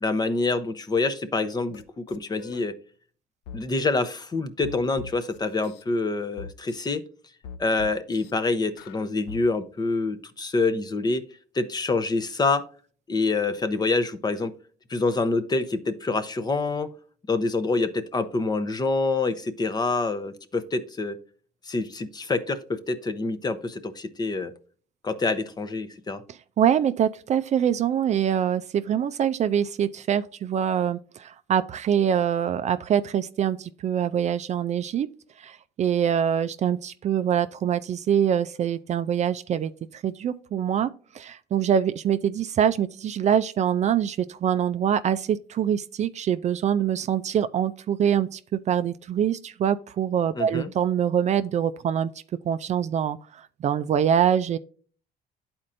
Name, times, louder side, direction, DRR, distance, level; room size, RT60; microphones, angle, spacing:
voice 1, 0.0-2.7 3.5-7.0 7.6-11.2 11.5-12.7 13.1-14.5 14.9-16.9 17.3-21.2 21.6-24.5 25.0-26.2 50.3-50.7, left 3 dB, 25° left, 0.7 m, -26 dB
sound 1, 1.7-2.6 3.5-3.6 4.6-5.8 6.4-6.9 7.4-8.3 8.8-9.4, left 7 dB, 90° left, 0.5 m, -41 dB
voice 2, 26.6-35.1 35.4-52.1 52.4-54.6, right 9 dB, 45° right, 0.4 m, -24 dB
11.5 x 4.3 x 2.5 m
cardioid pair, 110°, 17 cm